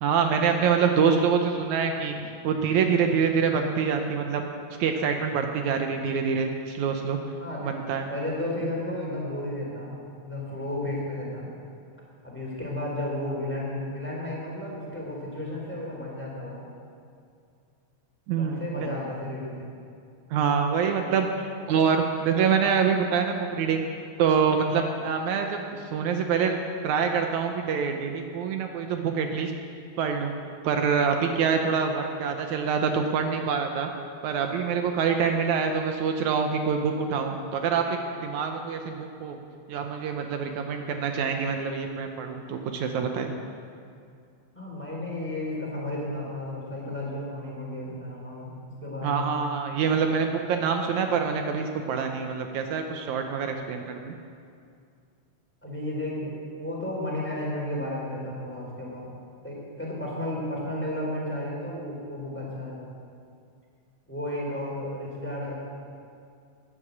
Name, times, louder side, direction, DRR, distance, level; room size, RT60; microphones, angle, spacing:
voice 1, 0.0-2.2 2.4-4.4 4.8-7.2 7.6-8.1 18.3-18.9 20.3-23.9 24.2-26.6 26.8-29.5 30.0-30.3 30.6-33.9 34.2-39.4 39.7-43.3 49.0-54.1, right 6 dB, 75° right, 5 dB, 2.2 m, -25 dB
voice 2, 7.4-7.7 8.1-9.9 10.2-11.5 12.2-16.6 18.4-19.7 44.5-48.5 48.8-49.4 53.4-53.5 55.6-56.3 56.6-59.1 59.4-62.9 64.1-65.6, left 1 dB, 5° left, -4 dB, 3.5 m, -33 dB
13.0 x 9.9 x 8.2 m, 2.4 s
omnidirectional pair, 3.4 m